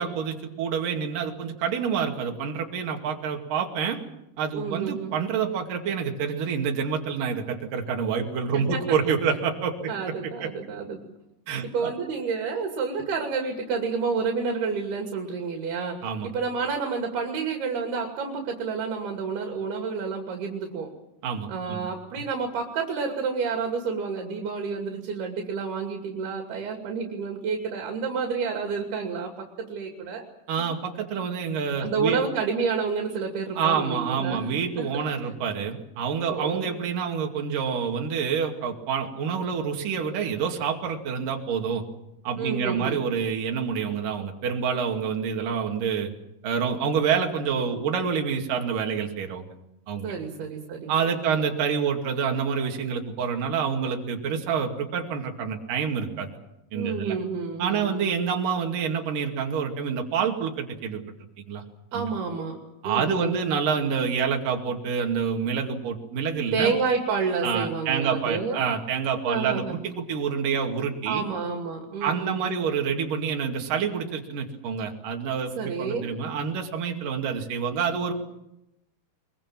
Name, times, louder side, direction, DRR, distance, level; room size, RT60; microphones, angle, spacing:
voice 1, 0.0-4.0 4.4-9.9 10.4-10.5 11.5-11.9 16.0-16.3 21.2-21.9 22.1-22.2 30.5-32.3 33.6-41.9 42.2-46.1 46.4-49.4 49.9-50.1 50.9-56.3 56.7-57.2 57.6-61.0 61.5-61.6 61.9-62.1 62.8-66.7 67.4-71.2 72.0-78.1, right 6 dB, 60° right, 2 dB, 3.8 m, -27 dB
voice 2, 4.5-5.2 8.5-8.8 9.9-11.0 11.7-20.9 21.5-29.3 29.6-30.2 31.8-34.5 34.8-35.0 36.3-36.8 42.4-43.0 50.0-51.4 56.7-58.2 61.9-62.6 62.8-63.5 66.5-68.6 69.3-69.8 71.1-72.6 75.6-76.1, right 5 dB, 75° right, 3 dB, 4.5 m, -29 dB
24.0 x 23.0 x 7.5 m, 0.85 s
omnidirectional pair, 4.6 m